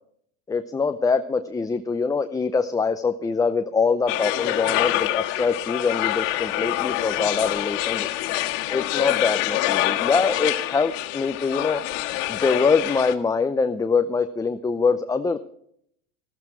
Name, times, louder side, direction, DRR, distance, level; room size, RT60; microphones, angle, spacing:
voice 1, 0.5-8.1 8.7-11.8 12.3-15.4, left 4 dB, 10° left, 8 dB, 0.5 m, -24 dB
sound 1, 4.1-13.1, left 15 dB, 65° left, 1.7 m, -26 dB
14.0 x 13.5 x 4.5 m, 0.68 s
supercardioid pair, 115°, 38 cm